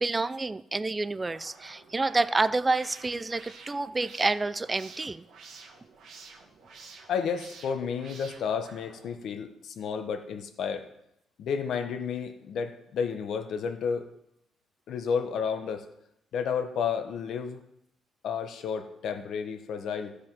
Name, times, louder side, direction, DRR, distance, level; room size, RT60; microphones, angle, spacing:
voice 1, 0.0-5.3, right 3 dB, 20° right, 17 dB, 0.4 m, -28 dB
sound 1, 1.2-9.4, right 4 dB, 70° right, 1.6 m, -50 dB
voice 2, 7.1-10.9 11.4-14.1 14.9-15.9 16.3-17.6 18.2-20.2, left 6 dB, 70° left, 7 dB, 1.1 m, -31 dB
14.0 x 5.1 x 5.9 m, 0.81 s
cardioid pair, 90°, 0 cm